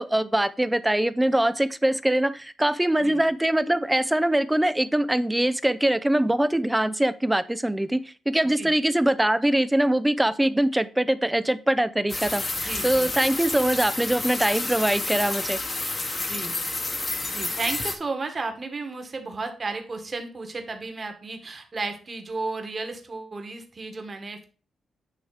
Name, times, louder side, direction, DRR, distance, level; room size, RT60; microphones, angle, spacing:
voice 1, 0.0-15.6, right 1 dB, 10° right, 0.5 m, -23 dB
sound 1, 12.1-17.9, left 2 dB, 30° left, 1.2 m, -30 dB
voice 2, 12.6-13.2 16.2-16.6 17.3-24.5, right 3 dB, 40° right, 1.7 m, -33 dB
9.3 x 3.2 x 4.9 m
cardioid pair, 75°, 0 cm